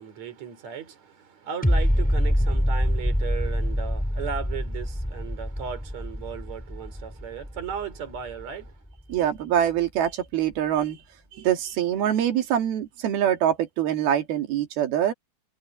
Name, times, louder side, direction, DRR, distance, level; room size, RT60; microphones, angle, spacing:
voice 1, 0.0-8.7, right 7 dB, 50° right, 4.6 m, -36 dB
sound 1, 1.6-8.7 9.1-9.2, equal, ahead, 3.9 m, -25 dB
voice 2, 9.1-11.0 11.3-15.1, right 10 dB, 90° right, 4.0 m, -24 dB
omnidirectional pair, 4.2 m